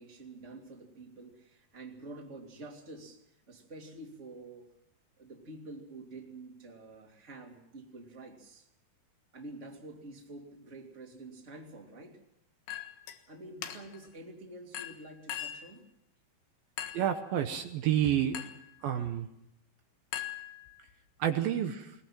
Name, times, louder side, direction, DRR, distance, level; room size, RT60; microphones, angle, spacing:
voice 1, 0.0-4.7 5.2-8.7 9.3-12.2 13.3-15.8, right 2 dB, 20° right, 1 dB, 2.7 m, -48 dB
Chink clink, 12.7-13.2 13.6-14.1 14.7-15.7 16.8-17.2 18.3-18.7 20.1-20.9, left 11 dB, 75° left, 3.4 m, -40 dB
voice 2, 16.9-18.4 18.8-19.3 21.2-21.9, right 10 dB, 75° right, 6 dB, 2.7 m, -29 dB
21.5 x 20.5 x 7.3 m, 0.80 s
omnidirectional pair, 4.5 m